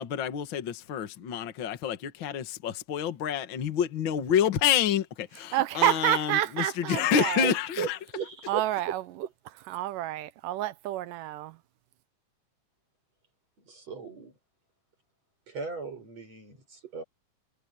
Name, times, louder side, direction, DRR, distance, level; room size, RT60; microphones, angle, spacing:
voice 1, 0.0-8.0, left 9 dB, 45° left, 1.9 m, -28 dB
voice 2, 5.5-7.5 8.5-9.0 9.7-11.6, right 14 dB, 90° right, 2.6 m, -28 dB
voice 3, 7.4-8.6 13.6-14.4 15.5-17.0, right 5 dB, 50° right, 8.9 m, -36 dB
omnidirectional pair, 3.7 m